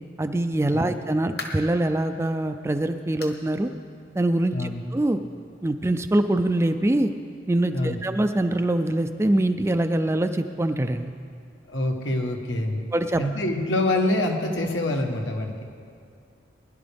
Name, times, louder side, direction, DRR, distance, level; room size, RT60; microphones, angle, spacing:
voice 1, 0.2-3.7 4.2-5.2 5.6-7.1 7.5-11.1 12.9-13.2, right 1 dB, 15° right, 9 dB, 0.3 m, -24 dB
sound 1, 1.4-1.8 2.3-2.4 3.2-3.5 3.8-3.9 4.4-4.5 5.6-5.7, left 3 dB, 55° left, 1.3 m, -38 dB
voice 2, 4.5-4.8 7.7-8.0 11.7-12.9 13.2-15.5, left 1 dB, 85° left, 3 dB, 1.3 m, -25 dB
21.0 x 11.0 x 3.5 m, 2.4 s
head